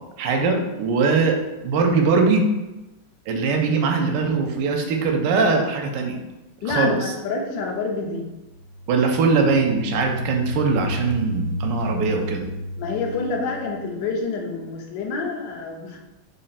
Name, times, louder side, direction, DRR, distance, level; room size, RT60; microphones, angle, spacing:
voice 1, 0.2-2.4 3.3-6.2 6.7-7.1 8.9-12.5, right 4 dB, 80° right, 3 dB, 1.2 m, -21 dB
voice 2, 6.6-8.3 12.8-16.0, left 4 dB, 85° left, 2 dB, 1.3 m, -27 dB
sound 1, 8.5-14.1, equal, 65° left, 0.9 m, -32 dB
3.6 x 2.1 x 4.0 m, 1.0 s
omnidirectional pair, 1.9 m